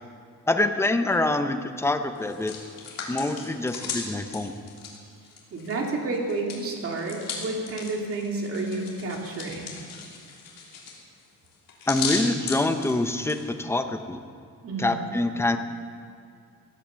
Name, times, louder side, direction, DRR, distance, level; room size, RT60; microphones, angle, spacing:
voice 1, 0.5-2.5 3.1-4.6 11.9-14.2 14.8-15.6, left 2 dB, 5° left, 7 dB, 0.7 m, -25 dB
Hands, 2.2-5.9 6.1-13.4, left 5 dB, 70° left, 3.3 m, -36 dB
voice 2, 5.5-9.7 14.6-15.1, right 2 dB, 40° right, 0 dB, 2.5 m, -30 dB
17.5 x 10.5 x 7.5 m, 2.3 s
cardioid pair, 170°, 35 cm